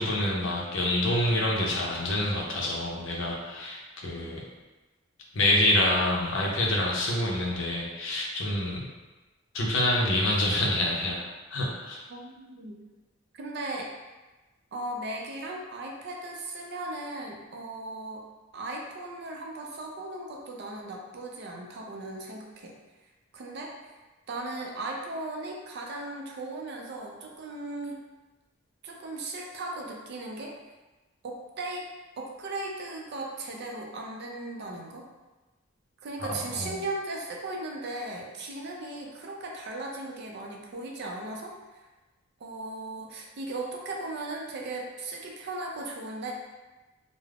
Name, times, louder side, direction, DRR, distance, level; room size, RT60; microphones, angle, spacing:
voice 1, 0.0-4.4 5.3-8.9 9.5-11.2 11.5-12.0 36.2-36.7, left 1 dB, 60° left, -3 dB, 0.5 m, -27 dB
voice 2, 12.1-12.8 13.3-13.9 14.7-18.2 18.5-22.8 23.3-23.7 24.3-28.0 28.8-30.5 31.2-31.9 32.2-35.1 36.0-41.5 42.4-46.3, right 2 dB, 50° right, 0 dB, 0.4 m, -37 dB
2.4 x 2.0 x 3.3 m, 1.2 s
head